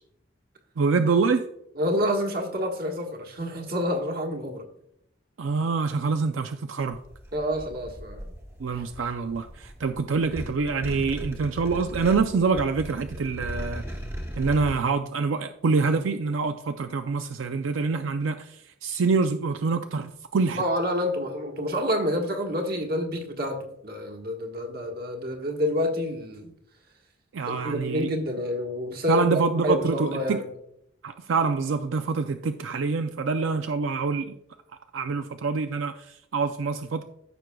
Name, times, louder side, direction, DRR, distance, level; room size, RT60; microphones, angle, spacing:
voice 1, 0.8-1.5 5.4-7.0 8.6-13.8 14.4-20.6 27.3-28.1 29.1-30.4 31.0-34.4 34.9-37.0, right 4 dB, 80° right, 0.4 m, -26 dB
voice 2, 1.8-4.7 7.3-8.2 20.6-26.5 27.5-30.5, left 1 dB, 50° right, 1.4 m, -28 dB
sound 1, 6.9-14.8, equal, 15° right, 1.0 m, -38 dB
14.0 x 6.0 x 2.3 m
head